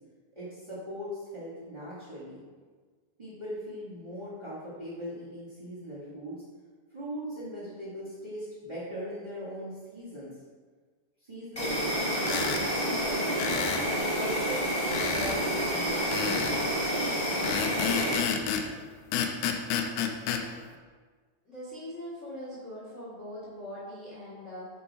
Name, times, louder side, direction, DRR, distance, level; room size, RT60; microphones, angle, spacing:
voice 1, 0.3-2.4 3.2-6.4 6.9-10.3 11.2-14.7 15.1-16.9, equal, 75° right, -11 dB, 0.4 m, -39 dB
Insect, 11.6-18.2, equal, 20° left, 0.9 m, -29 dB
sound 1, 12.2-12.6 13.4-13.9 14.9-15.4 16.1-16.6 17.4-18.7 19.1-20.4, left 7 dB, 80° left, 2.2 m, -30 dB
voice 2, 21.4-24.7, equal, 55° left, -8 dB, 0.8 m, -41 dB
6.3 x 4.1 x 4.5 m, 1.5 s
omnidirectional pair, 4.1 m